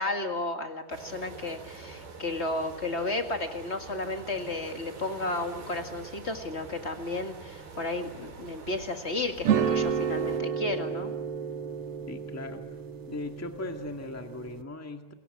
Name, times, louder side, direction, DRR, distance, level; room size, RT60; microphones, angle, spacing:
voice 1, 0.0-11.1, left 2 dB, 40° left, 5 dB, 0.9 m, -33 dB
sound 1, 0.9-10.4, right 5 dB, 85° right, 6.9 m, -45 dB
sound 2, 9.4-14.6, right 7 dB, 55° right, 1.7 m, -31 dB
voice 2, 12.1-12.7 13.1-15.1, left 2 dB, 20° left, 5 dB, 0.4 m, -38 dB
28.5 x 22.5 x 7.7 m, 0.96 s
omnidirectional pair, 4.3 m